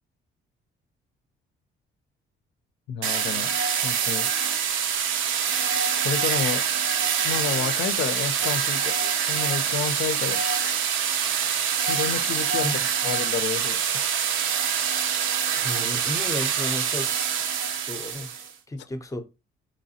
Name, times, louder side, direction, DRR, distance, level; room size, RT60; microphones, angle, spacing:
voice 1, 2.9-3.6 3.8-4.3 6.0-6.6 7.2-9.0 9.3-10.4 11.9-12.7 13.0-14.2, left 7 dB, 65° left, 0.4 m, -30 dB
sound 1, 3.0-18.5, right 7 dB, 80° right, 0.5 m, -25 dB
voice 2, 15.6-17.1 17.8-19.2, left 1 dB, 15° left, 0.5 m, -33 dB
4.0 x 3.1 x 2.7 m
cardioid pair, 90°, 20 cm